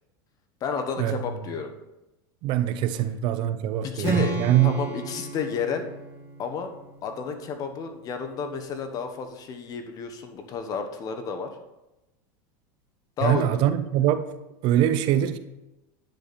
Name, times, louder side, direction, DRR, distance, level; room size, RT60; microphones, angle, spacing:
voice 1, 0.6-1.7 3.5-4.4 4.6-5.9 6.4-6.7 7.0-11.5 13.2-13.6, left 6 dB, 35° left, 1.2 m, -31 dB
voice 2, 2.4-4.9 13.2-14.2 14.6-15.4, right 11 dB, 50° right, 0.6 m, -23 dB
Strum, 4.0-8.1, right 3 dB, 20° right, 2.2 m, -33 dB
10.5 x 8.4 x 4.3 m
supercardioid pair, 140°, 11 cm